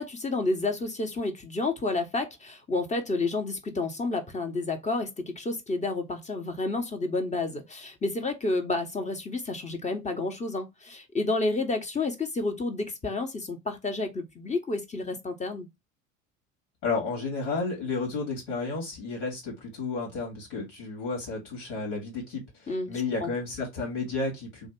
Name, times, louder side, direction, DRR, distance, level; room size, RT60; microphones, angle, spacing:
voice 1, 0.0-15.7 22.7-23.3, left 3 dB, 20° left, 1.2 m, -30 dB
voice 2, 16.8-24.7, left 3 dB, 70° left, 2.3 m, -32 dB
3.5 x 2.8 x 4.5 m
figure-of-eight pair, 70°, 39 cm